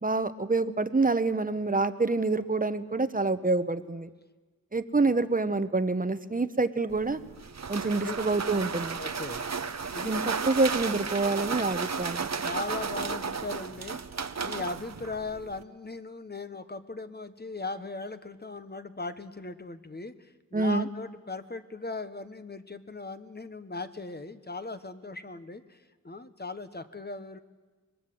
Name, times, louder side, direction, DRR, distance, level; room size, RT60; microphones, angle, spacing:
voice 1, 0.0-4.1 4.7-7.2 7.7-9.0 10.0-12.3 20.5-20.9, right 3 dB, 25° right, 12 dB, 1.0 m, -27 dB
sound 1, 6.9-15.6, right 5 dB, 55° right, 0.9 m, -34 dB
voice 2, 8.9-9.4 9.9-10.1 12.4-14.0 14.4-27.4, left 3 dB, 30° left, 10 dB, 1.2 m, -38 dB
25.0 x 21.5 x 7.8 m, 1.3 s
wide cardioid pair, 85°, 33 cm